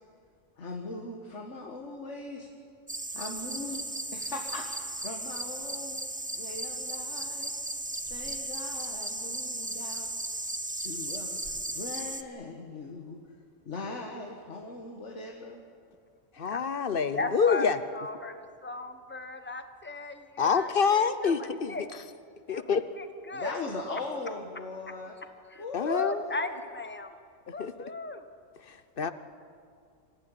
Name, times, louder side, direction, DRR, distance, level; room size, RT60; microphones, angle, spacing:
voice 1, 0.6-2.5 3.1-3.8 4.1-6.0 6.4-7.5 8.1-10.1 10.8-13.2 13.7-15.6 23.3-25.1 25.6-26.0, left 3 dB, 65° left, 1 dB, 2.0 m, -40 dB
sound 1, 2.9-12.2, right 1 dB, 10° right, 0.5 m, -36 dB
voice 2, 16.4-17.8 20.4-21.7 22.5-22.9 25.7-26.2 27.6-27.7 29.0-29.1, left 6 dB, 50° left, 12 dB, 1.0 m, -26 dB
voice 3, 17.2-21.9 22.5-23.6 25.4-27.1 27.5-28.2, left 3 dB, 10° left, 8 dB, 1.1 m, -36 dB
25.5 x 15.0 x 9.8 m, 2.2 s
omnidirectional pair, 1.3 m